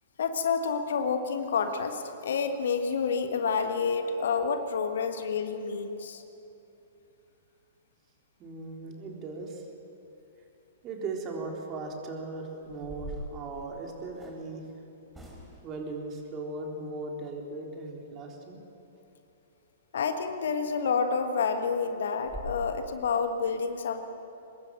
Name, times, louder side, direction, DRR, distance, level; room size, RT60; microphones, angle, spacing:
voice 1, 0.2-6.2 19.9-24.0, left 5 dB, 60° left, 7 dB, 1.6 m, -29 dB
voice 2, 8.4-9.7 10.8-14.6 15.6-18.6, right 3 dB, 25° right, 1 dB, 3.7 m, -38 dB
sound 1, 12.6-14.4 15.1-15.8 20.3-20.4 20.9-21.0 21.4-21.5 21.8-21.9 22.2-22.6, right 1 dB, 10° right, 4.4 m, -43 dB
24.5 x 21.0 x 7.7 m, 2.9 s
figure-of-eight pair, 110°, 0 cm